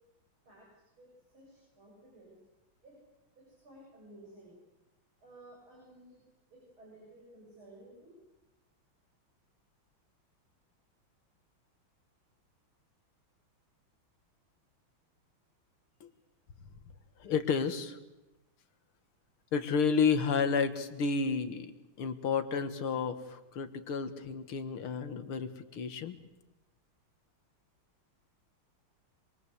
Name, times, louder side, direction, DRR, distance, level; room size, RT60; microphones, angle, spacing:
voice 1, 0.5-2.4 2.8-3.0 3.4-4.6 5.2-6.2 6.5-8.2 15.9-16.0, right 1 dB, 75° right, -3 dB, 8.7 m, -55 dB
voice 2, 17.2-18.0 19.5-26.2, left 5 dB, 85° left, 9 dB, 2.5 m, -31 dB
26.5 x 23.0 x 8.2 m, 0.98 s
omnidirectional pair, 2.3 m